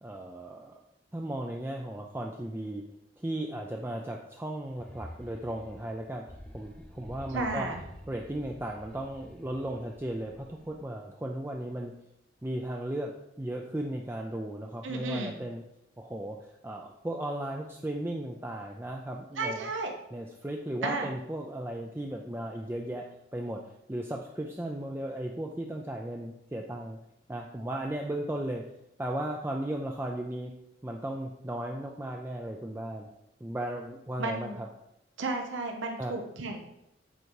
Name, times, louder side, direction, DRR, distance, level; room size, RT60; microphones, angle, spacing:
voice 1, 0.0-0.8 1.1-2.8 3.2-6.2 6.5-7.7 8.1-11.9 12.4-15.6 16.0-16.4 16.6-19.7 20.1-23.0 23.3-27.0 27.3-28.6 29.0-30.5 30.8-33.1 33.4-34.5 36.0-36.1, right 1 dB, 10° right, 1 dB, 0.4 m, -36 dB
sound 1, 4.6-11.0, equal, 5° left, 0.8 m, -49 dB
voice 2, 7.3-7.8 14.8-15.4 19.4-19.9 20.8-21.1 34.2-34.6 35.2-36.6, right 3 dB, 80° right, 2 dB, 0.9 m, -33 dB
7.9 x 4.8 x 4.7 m, 0.84 s
head